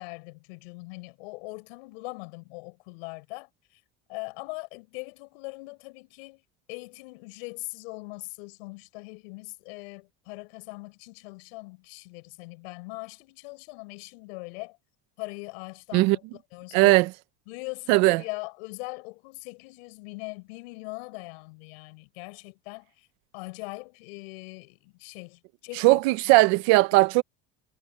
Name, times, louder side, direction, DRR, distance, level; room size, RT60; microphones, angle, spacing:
voice 1, 0.0-3.5 4.1-6.4 6.7-14.8 15.2-16.2 16.5-17.0 17.5-23.1 23.3-26.0 26.3-26.4, left 29 dB, 85° left, 7.4 m, -41 dB
voice 2, 16.7-17.1 17.9-18.2 25.7-27.2, right 22 dB, 65° right, 1.1 m, -19 dB
cardioid pair, 170°, 30 cm